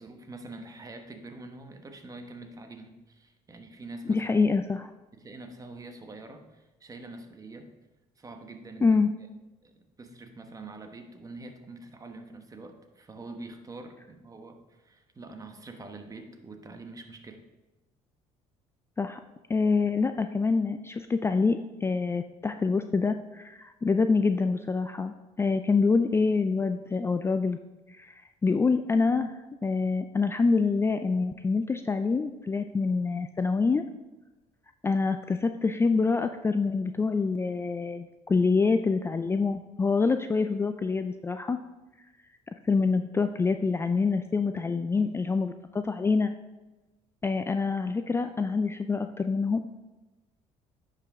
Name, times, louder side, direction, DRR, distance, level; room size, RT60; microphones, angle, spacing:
voice 1, 0.0-4.3 5.1-7.7 8.2-8.9 9.6-9.7 10.0-17.4 26.9-27.1, right 2 dB, 25° right, 6 dB, 1.1 m, -45 dB
voice 2, 4.1-4.9 8.8-9.1 19.0-19.2 19.5-27.6 27.9-29.3 29.6-33.8 34.8-41.6 42.6-46.3 47.2-49.6, left 4 dB, 20° left, 8 dB, 0.3 m, -26 dB
10.0 x 5.1 x 3.6 m, 1.1 s
supercardioid pair, 85°, 14 cm